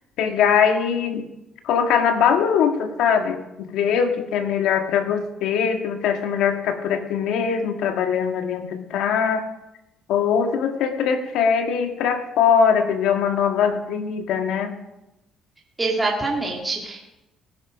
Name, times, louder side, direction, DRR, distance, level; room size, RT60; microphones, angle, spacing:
voice 1, 0.2-1.3 1.6-9.4 10.1-14.7, left 7 dB, 75° left, 6 dB, 1.7 m, -21 dB
voice 2, 15.8-17.0, right 3 dB, 15° right, -2 dB, 2.4 m, -24 dB
17.5 x 10.5 x 5.1 m, 0.95 s
cardioid pair, 145°, 0 cm